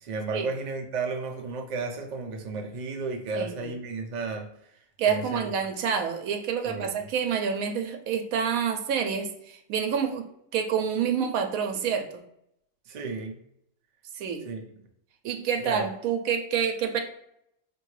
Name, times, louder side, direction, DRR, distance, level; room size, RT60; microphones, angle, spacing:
voice 1, 0.0-4.5 5.1-5.5 6.6-6.9 12.9-13.4 14.4-14.6 15.6-15.9, right 3 dB, 50° right, 3 dB, 0.5 m, -33 dB
voice 2, 3.3-3.7 5.0-12.1 14.1-14.4 15.2-17.0, right 7 dB, 85° right, 5 dB, 1.0 m, -28 dB
4.5 x 2.6 x 3.1 m, 0.76 s
omnidirectional pair, 1.4 m